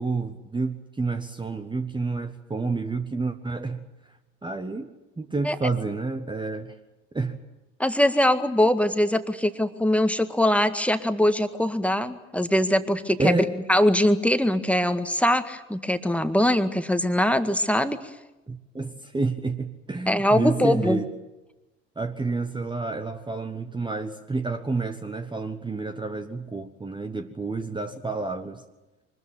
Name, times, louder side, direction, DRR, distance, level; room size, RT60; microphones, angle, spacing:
voice 1, 0.0-3.8 4.4-6.7 7.1-7.4 13.2-13.5 18.5-21.0 22.0-28.6, right 3 dB, 15° right, 7 dB, 1.4 m, -29 dB
voice 2, 7.8-18.1 20.1-21.0, left 1 dB, 5° left, 9 dB, 1.8 m, -22 dB
24.0 x 20.5 x 9.2 m, 1.0 s
figure-of-eight pair, 60°, 37 cm